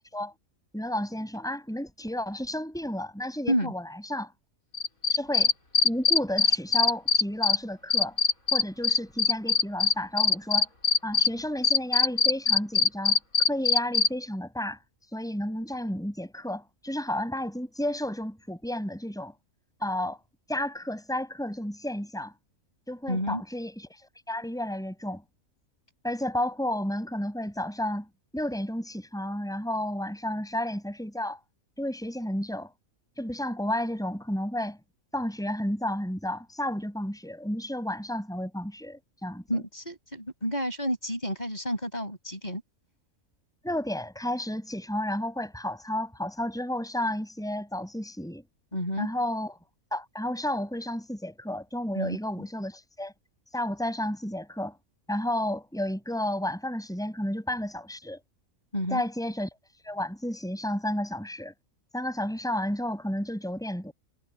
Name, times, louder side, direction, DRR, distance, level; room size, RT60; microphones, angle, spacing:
voice 1, 0.7-4.3 5.1-5.5 5.8-8.2 8.5-10.7 11.0-13.2 13.5-14.8 15.1-19.3 19.8-20.2 20.5-22.3 22.9-24.0 24.3-25.2 26.0-28.1 28.3-31.4 31.8-32.7 33.2-34.8 35.1-39.6 43.6-48.4 49.0-49.6 49.9-53.1 53.5-54.8 55.1-58.2 58.9-59.5 59.8-61.5 61.9-63.9, left 1 dB, ahead, 6.1 m, -32 dB
Cricket, 4.7-7.6 7.9-11.3 11.6-14.1, left 4 dB, 75° left, 5.8 m, -21 dB
voice 2, 23.1-23.4 39.5-42.6 48.7-49.1 52.0-52.2 58.7-59.0, equal, 30° left, 7.0 m, -30 dB
omnidirectional pair, 1.5 m